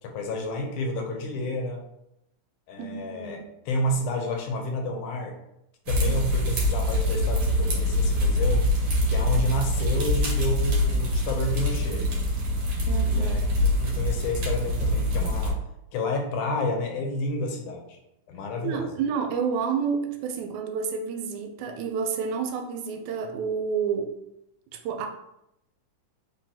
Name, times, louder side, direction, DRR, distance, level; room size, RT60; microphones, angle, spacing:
voice 1, 0.0-1.8 2.7-5.4 5.9-8.6 9.1-12.0 12.9-15.6 15.9-18.0 18.3-18.9, left 1 dB, 80° left, 2 dB, 2.2 m, -30 dB
voice 2, 2.8-3.5 12.9-13.4 18.6-24.1 24.7-25.1, right 6 dB, 80° right, 6 dB, 1.9 m, -29 dB
sound 1, 5.9-15.5, left 1 dB, 60° right, 1.7 m, -24 dB
4.7 x 3.8 x 2.7 m, 0.82 s
omnidirectional pair, 3.5 m